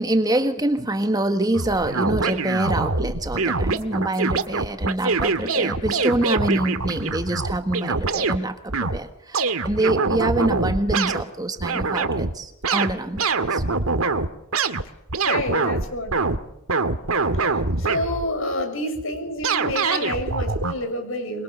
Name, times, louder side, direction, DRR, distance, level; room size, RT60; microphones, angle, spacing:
voice 1, 0.0-13.6, right 1 dB, 20° right, 7 dB, 1.5 m, -25 dB
sound 1, 1.5-8.4 8.7-9.0 9.3-11.2 11.6-12.4 12.6-16.4 16.7-18.3 19.4-20.7, right 3 dB, 80° right, 1.9 m, -24 dB
voice 2, 15.2-16.2 17.8-21.4, left 1 dB, 65° left, 7 dB, 6.9 m, -28 dB
26.5 x 22.5 x 6.8 m, 0.85 s
head